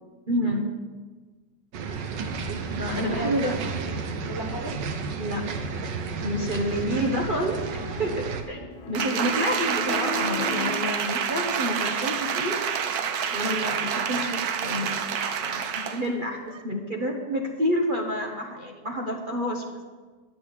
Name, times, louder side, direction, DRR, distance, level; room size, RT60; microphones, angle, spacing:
voice 1, 0.3-0.7 2.7-3.6 5.2-5.6 6.2-7.6 8.0-8.6 8.9-12.6 13.3-19.8, equal, 35° right, 1 dB, 0.9 m, -29 dB
sound 1, 1.7-8.4, right 4 dB, 80° right, 1.6 m, -32 dB
voice 2, 2.9-4.8 6.9-7.1, equal, 20° left, 1 dB, 0.7 m, -36 dB
Piano, 7.7-11.1, left 5 dB, 70° left, 1.4 m, -37 dB
Applause, 8.9-16.1 16.5-16.6, right 7 dB, 65° right, 1.2 m, -28 dB
10.5 x 6.1 x 8.5 m, 1.4 s
omnidirectional pair, 1.9 m